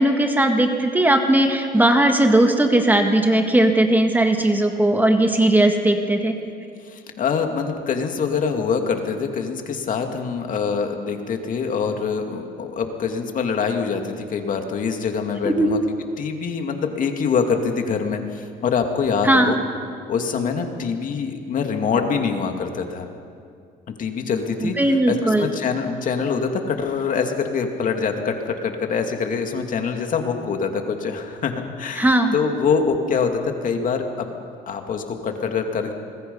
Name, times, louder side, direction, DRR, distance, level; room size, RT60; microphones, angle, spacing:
voice 1, 0.0-6.4 15.5-15.7 19.2-19.5 24.6-25.5 32.0-32.3, right 1 dB, 10° right, 4 dB, 1.8 m, -18 dB
voice 2, 6.8-15.8 16.2-19.6 20.0-23.1 24.0-34.3 34.7-35.9, left 5 dB, 50° left, 4 dB, 2.4 m, -24 dB
25.5 x 21.0 x 5.5 m, 2.3 s
cardioid pair, 110°, 17 cm